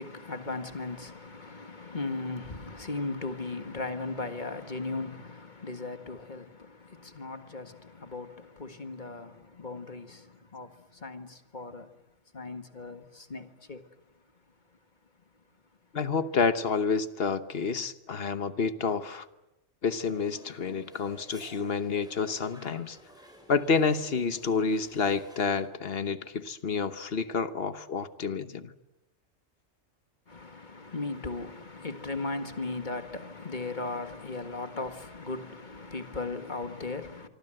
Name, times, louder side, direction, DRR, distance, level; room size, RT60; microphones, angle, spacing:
voice 1, 0.0-11.9 12.3-13.9 30.3-37.3, left 3 dB, 40° left, 1.8 m, -37 dB
voice 2, 15.9-19.3 19.8-23.0 23.5-28.7, left 5 dB, 55° left, 1.3 m, -29 dB
sound 1, 19.8-25.7, equal, 5° right, 7.2 m, -54 dB
25.5 x 25.0 x 7.8 m
omnidirectional pair, 1.2 m